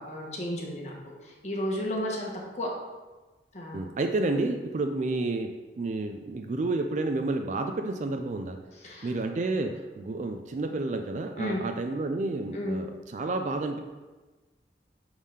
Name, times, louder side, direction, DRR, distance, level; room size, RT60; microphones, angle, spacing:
voice 1, 0.0-2.7 3.5-3.8 8.8-9.1 11.4-11.6 12.5-12.8, equal, 40° left, -2 dB, 1.1 m, -33 dB
voice 2, 3.7-5.5 5.7-8.6 9.0-9.7 10.0-13.8, right 2 dB, 40° right, 5 dB, 0.3 m, -30 dB
4.8 x 3.6 x 5.6 m, 1.2 s
head